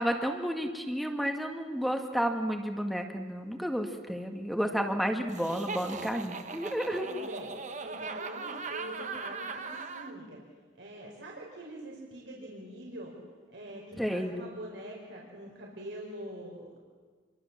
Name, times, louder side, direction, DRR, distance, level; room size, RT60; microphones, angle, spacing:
voice 1, 0.0-7.0 14.0-14.4, equal, ahead, 4 dB, 1.9 m, -31 dB
Laughter, 5.3-10.1, right 4 dB, 40° right, 1.5 m, -39 dB
voice 2, 6.9-7.5 7.8-10.4 10.8-13.1 13.5-16.8, right 1 dB, 70° right, -2 dB, 4.8 m, -44 dB
28.0 x 23.5 x 7.4 m, 1.5 s
head